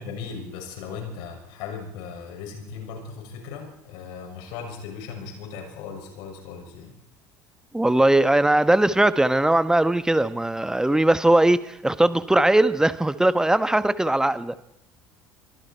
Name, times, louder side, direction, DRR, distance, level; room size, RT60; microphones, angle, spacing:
voice 1, 0.0-6.9, left 5 dB, 60° left, 3 dB, 6.9 m, -37 dB
voice 2, 7.7-14.6, right 1 dB, 5° right, 13 dB, 1.3 m, -20 dB
25.5 x 23.0 x 4.6 m, 0.81 s
figure-of-eight pair, 65°, 9 cm